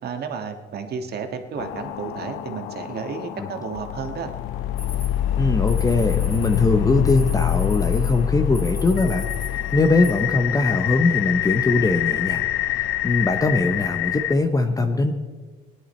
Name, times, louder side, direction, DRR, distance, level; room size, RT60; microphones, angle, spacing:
voice 1, 0.0-4.3, right 6 dB, 50° right, 6 dB, 1.6 m, -32 dB
sound 1, 1.6-14.3, left 11 dB, 75° left, 0.6 m, -25 dB
sound 2, 4.8-10.1, left 3 dB, 40° left, 3.1 m, -40 dB
voice 2, 5.4-9.3 9.7-12.5 12.7-15.1, left 3 dB, 15° left, 6 dB, 0.8 m, -21 dB
18.5 x 10.5 x 4.3 m, 1.4 s
cardioid pair, 110°, 21 cm